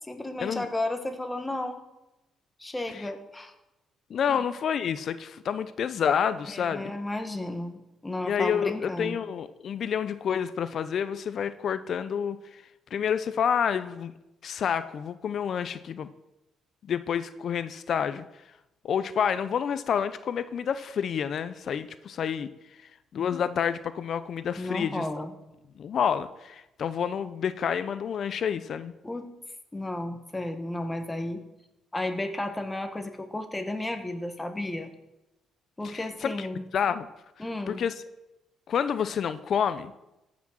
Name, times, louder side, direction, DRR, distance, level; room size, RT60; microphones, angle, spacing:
voice 1, 0.0-1.8 2.6-3.5 4.3-4.4 6.5-9.2 24.6-25.3 29.0-29.3 29.7-31.4 31.9-34.9 35.8-36.6 37.4-37.8, left 1 dB, 15° left, 7 dB, 1.5 m, -33 dB
voice 2, 4.1-6.9 8.2-12.4 12.9-14.1 14.4-16.1 16.8-18.2 18.8-22.5 23.1-25.0 25.8-28.9 35.8-36.5 36.7-37.1 37.7-37.9 38.7-39.9, left 8 dB, 60° left, 14 dB, 0.6 m, -28 dB
14.5 x 6.1 x 6.3 m, 0.96 s
cardioid pair, 90°, 0 cm